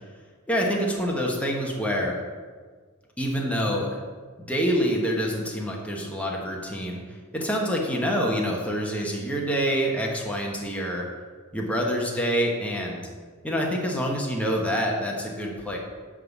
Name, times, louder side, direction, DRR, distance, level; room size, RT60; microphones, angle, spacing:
voice 1, 0.5-2.2 3.2-4.0 4.5-7.0 7.3-11.1 11.5-13.0 13.4-15.8, equal, 5° left, -2 dB, 1.2 m, -26 dB
10.5 x 3.8 x 7.1 m, 1.5 s
head